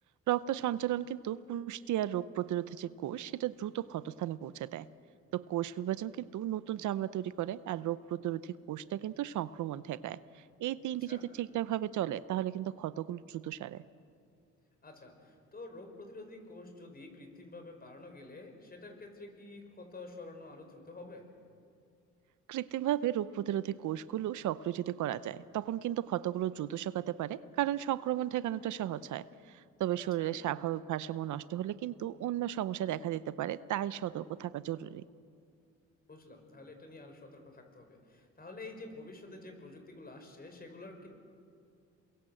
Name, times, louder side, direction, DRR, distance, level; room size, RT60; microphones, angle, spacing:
voice 1, 0.3-4.9 5.3-10.2 10.6-13.8 22.5-29.3 29.8-35.0, right 12 dB, 75° right, 16 dB, 0.7 m, -34 dB
voice 2, 14.8-21.3 30.2-30.3 36.1-41.1, left 2 dB, 30° left, 5 dB, 5.6 m, -49 dB
28.5 x 22.5 x 7.8 m, 2.4 s
cardioid pair, 90°, 30 cm